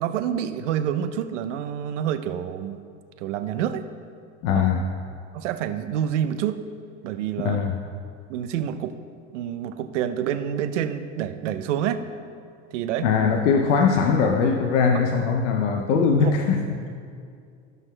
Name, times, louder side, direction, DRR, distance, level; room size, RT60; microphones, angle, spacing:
voice 1, 0.0-2.8 3.2-3.8 4.5-4.6 5.3-6.6 7.0-7.6 8.3-9.0 9.3-12.0 12.7-13.1 16.2-16.3, right 9 dB, 85° right, 10 dB, 0.6 m, -27 dB
voice 2, 4.4-4.9 7.4-7.8 13.0-16.9, left 5 dB, 80° left, 4 dB, 0.6 m, -21 dB
17.0 x 6.0 x 2.2 m, 2.3 s
hypercardioid pair, 75°, 35 cm